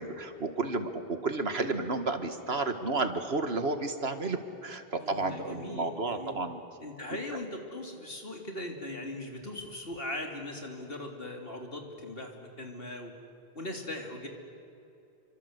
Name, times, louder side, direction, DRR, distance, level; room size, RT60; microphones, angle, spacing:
voice 1, 0.0-6.6, right 3 dB, 80° right, 8 dB, 2.1 m, -32 dB
voice 2, 5.0-6.3 6.8-13.1 13.5-14.3, left 1 dB, 65° left, 3 dB, 3.7 m, -39 dB
29.0 x 25.0 x 8.2 m, 2.8 s
omnidirectional pair, 1.0 m